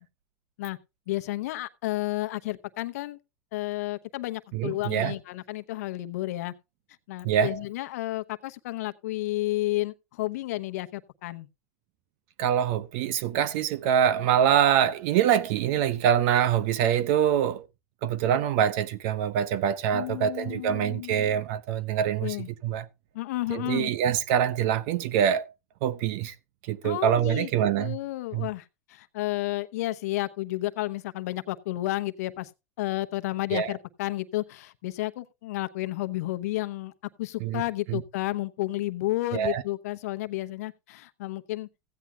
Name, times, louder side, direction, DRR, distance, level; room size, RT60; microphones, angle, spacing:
voice 1, 1.1-3.2 3.5-6.5 7.1-11.5 19.9-21.3 22.2-22.5 23.1-23.9 26.8-27.5 27.8-28.6 28.9-32.5 32.8-36.9 37.2-41.7, left 17 dB, 80° left, 0.9 m, -31 dB
voice 2, 4.5-5.2 7.2-7.6 12.4-17.7 18.0-22.9 23.5-25.4 25.8-26.3 26.6-28.0 28.3-28.5 33.5-33.8 37.4-37.6 37.9-38.0 39.3-39.6, right 9 dB, 65° right, 1.1 m, -25 dB
15.5 x 9.6 x 2.3 m
supercardioid pair, 120°, 8 cm